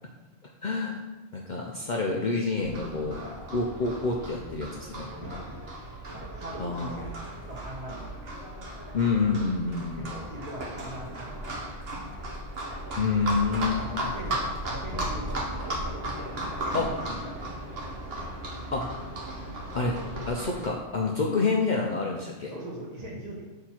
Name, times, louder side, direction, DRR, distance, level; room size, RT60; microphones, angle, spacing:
voice 1, 0.6-1.0 1.3-3.2 3.5-5.1 6.6-7.0 8.9-10.0 13.0-13.8 16.7-16.9 18.7-18.8 19.7-20.0 20.3-22.5, left 4 dB, 45° left, -1 dB, 0.7 m, -27 dB
Livestock farm animals working animals, 2.6-20.7, right 1 dB, 55° right, 1.4 m, -36 dB
voice 2, 3.1-3.6 5.1-5.6 6.1-8.3 9.9-11.9 13.8-16.2 16.6-16.8 17.1-17.4 22.5-23.5, equal, 35° right, -4 dB, 1.6 m, -41 dB
6.5 x 4.0 x 4.4 m, 1.2 s
omnidirectional pair, 1.2 m